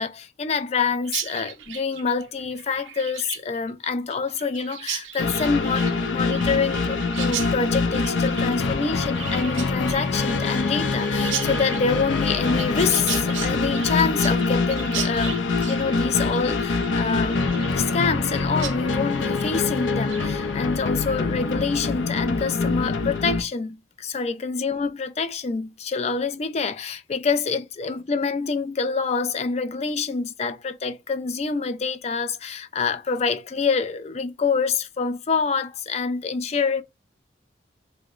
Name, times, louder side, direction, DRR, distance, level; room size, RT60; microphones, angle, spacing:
voice 1, 0.0-17.4 17.8-36.8, left 5 dB, 35° left, 0.3 m, -26 dB
Chirp tweet, 1.0-18.3 18.6-18.8 19.1-19.5 19.9-20.3, right 10 dB, 85° right, 0.5 m, -36 dB
sound 1, 5.2-23.4, left 3 dB, 90° left, 0.5 m, -25 dB
2.9 x 2.1 x 3.7 m
head